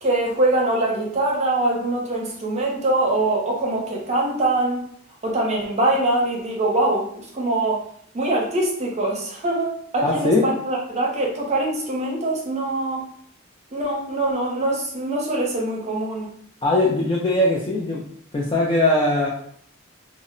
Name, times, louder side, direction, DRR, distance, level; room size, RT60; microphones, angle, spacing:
voice 1, 0.0-4.8 5.2-7.8 8.1-13.1 13.7-16.3, right 2 dB, 35° right, -2 dB, 0.6 m, -23 dB
voice 2, 10.0-10.5 16.6-18.0 18.3-19.3, left 2 dB, 25° left, -4 dB, 0.3 m, -20 dB
2.0 x 2.0 x 3.6 m, 0.63 s
head